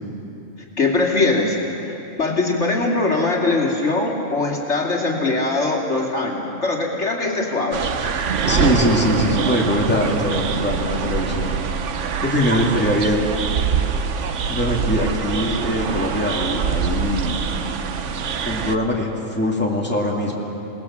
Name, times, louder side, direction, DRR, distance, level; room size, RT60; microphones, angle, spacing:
voice 1, 0.8-1.6 1.8-7.8, left 3 dB, 60° left, -1 dB, 2.9 m, -21 dB
sound 1, 7.7-18.8, right 6 dB, 70° right, 1.2 m, -24 dB
voice 2, 8.5-11.6 12.2-13.3 14.5-17.5 18.5-20.4, left 1 dB, 10° left, -2 dB, 2.4 m, -22 dB
27.5 x 19.0 x 7.3 m, 3.0 s
omnidirectional pair, 1.3 m